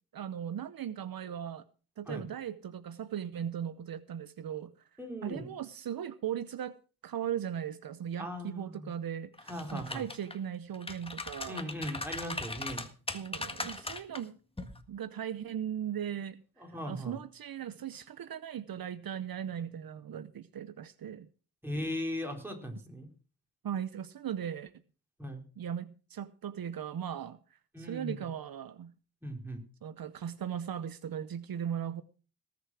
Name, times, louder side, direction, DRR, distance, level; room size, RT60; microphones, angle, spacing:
voice 1, 0.1-1.6 2.0-4.7 5.2-6.7 7.0-11.7 13.1-16.4 16.9-21.3 23.6-24.7 25.6-27.4 27.8-28.9 29.8-32.0, right 9 dB, 65° right, 0.8 m, -38 dB
voice 2, 5.0-5.5 8.2-8.9 9.5-10.1 11.4-12.9 16.6-17.2 21.6-23.1 25.2-25.4 27.7-28.2 29.2-29.6, equal, 5° right, 4.1 m, -38 dB
sound 1, 9.4-10.3 10.7-14.2 14.6-14.8, left 2 dB, 15° left, 1.6 m, -39 dB
19.0 x 6.9 x 6.1 m
cardioid pair, 95°, 38 cm